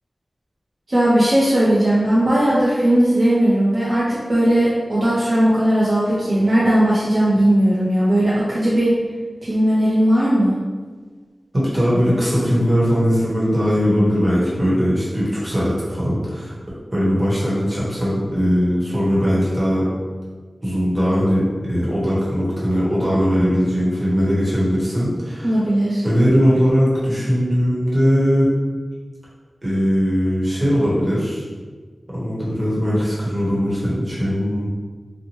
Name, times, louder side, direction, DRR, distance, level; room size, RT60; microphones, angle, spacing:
voice 1, 0.9-8.9 9.4-10.6 25.4-26.0, right 1 dB, 55° right, -8 dB, 0.5 m, -17 dB
voice 2, 11.5-16.5 16.9-19.8 20.6-25.6 26.0-28.5 29.6-31.4 32.1-34.7, equal, 30° right, -8 dB, 1.1 m, -19 dB
2.8 x 2.1 x 2.9 m, 1.5 s
wide cardioid pair, 75°, 0 cm